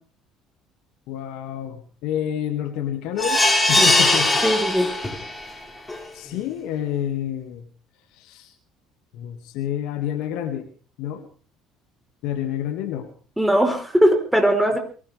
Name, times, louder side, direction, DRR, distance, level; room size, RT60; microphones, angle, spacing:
voice 1, 1.1-4.4 6.1-7.7 8.1-8.5 9.1-10.7 11.0-11.3 12.2-13.1, left 10 dB, 60° left, 7 dB, 2.1 m, -29 dB
sound 1, 3.2-5.4 5.9-6.0 6.3-6.4, left 2 dB, 15° left, 5.4 m, -20 dB
voice 2, 4.4-4.9 13.4-14.8, equal, 5° right, 4 dB, 4.2 m, -19 dB
23.0 x 16.5 x 3.5 m, 0.40 s
figure-of-eight pair, 55°, 0 cm